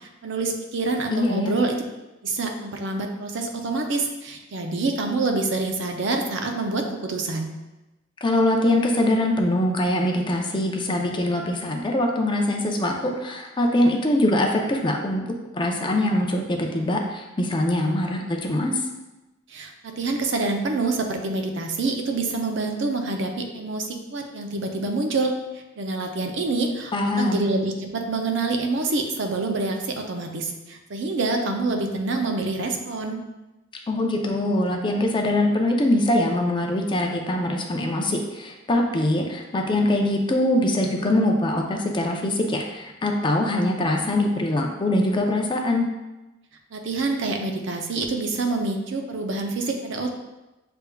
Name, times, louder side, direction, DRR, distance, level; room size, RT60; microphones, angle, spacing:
voice 1, 0.0-1.8 2.2-7.5 19.5-25.3 25.8-33.2 46.7-50.2, right 3 dB, 65° right, 4 dB, 0.6 m, -26 dB
voice 2, 1.1-1.5 8.2-18.8 26.9-27.5 33.9-45.9, left 1 dB, 25° left, 2 dB, 0.5 m, -23 dB
6.7 x 3.5 x 2.3 m, 1.1 s
head